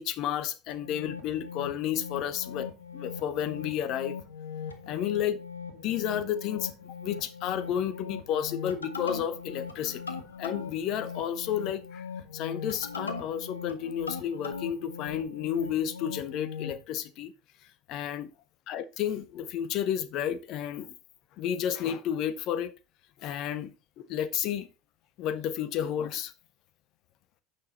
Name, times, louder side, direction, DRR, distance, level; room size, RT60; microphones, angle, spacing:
voice 1, 0.0-4.2 4.9-5.4 5.7-12.0 12.3-17.3 17.9-18.3 18.7-20.9 21.4-22.7 23.2-24.7 25.2-26.3, left 9 dB, 50° left, 0.8 m, -32 dB
sound 1, 0.7-16.8, left 6 dB, 80° left, 1.2 m, -40 dB
8.9 x 6.3 x 4.1 m
figure-of-eight pair, 70°, 0 cm